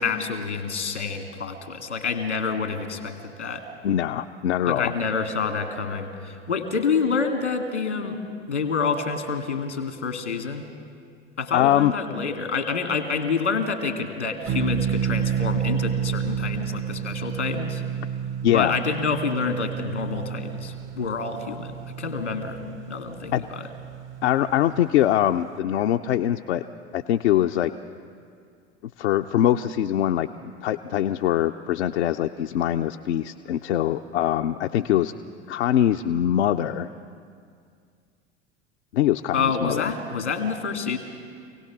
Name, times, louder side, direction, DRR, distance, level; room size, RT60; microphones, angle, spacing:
voice 1, 0.0-3.6 4.7-8.2 8.5-10.7 11.4-17.8 18.5-22.6 22.9-23.7 39.3-41.0, left 5 dB, 90° left, 6 dB, 2.0 m, -28 dB
voice 2, 3.8-4.9 11.5-11.9 18.4-18.8 23.3-23.4 24.2-26.6 26.9-27.7 29.0-30.3 30.6-35.1 35.5-36.9 38.9-39.9, left 11 dB, 70° left, 5 dB, 0.6 m, -23 dB
sound 1, 14.5-25.0, right 8 dB, 35° right, 0.7 m, -30 dB
27.0 x 17.5 x 6.0 m, 2.2 s
figure-of-eight pair, 70°, 34 cm